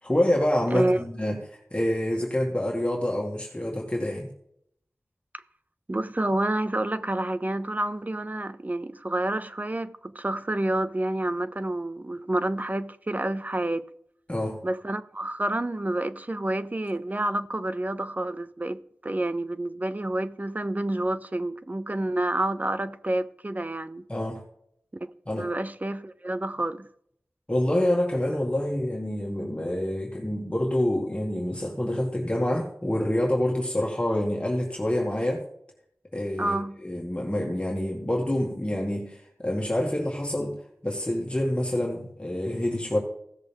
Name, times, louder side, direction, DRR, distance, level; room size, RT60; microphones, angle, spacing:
voice 1, 0.0-4.3 14.3-14.6 24.1-24.4 25.3-25.5 27.5-35.4 36.1-40.6 40.8-43.0, left 1 dB, 25° left, 2.1 m, -27 dB
voice 2, 5.9-13.9 14.6-24.1 24.9-25.1 25.4-26.9 36.4-36.8, right 1 dB, 35° right, 0.6 m, -29 dB
16.0 x 6.6 x 3.6 m
wide cardioid pair, 45°, 5 cm